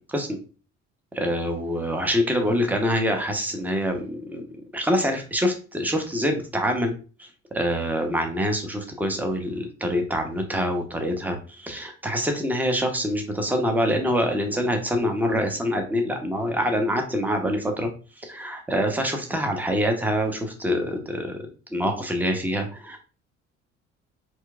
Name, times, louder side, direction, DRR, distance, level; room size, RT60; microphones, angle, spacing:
voice 1, 1.1-6.9 7.2-7.3 7.5-17.9 18.2-23.0, equal, 5° right, 4 dB, 0.8 m, -25 dB
4.3 x 2.3 x 2.3 m, 0.36 s
hypercardioid pair, 55°, 36 cm